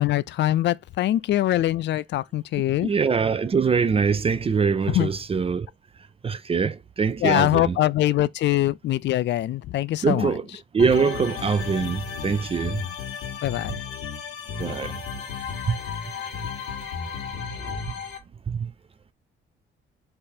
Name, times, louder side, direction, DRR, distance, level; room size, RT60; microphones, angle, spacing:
voice 1, 0.0-2.9 4.9-5.1 7.2-10.3 13.4-13.8, left 14 dB, 65° left, 0.4 m, -23 dB
voice 2, 2.8-5.7 6.0-7.8 10.0-10.5 10.7-12.8 14.6-15.0 15.7-15.8 17.5-17.8 18.5-18.7, right 5 dB, 30° right, 0.4 m, -24 dB
sound 1, 10.8-18.2, left 7 dB, 90° left, 1.3 m, -34 dB
3.4 x 3.4 x 4.3 m
cardioid pair, 90°, 20 cm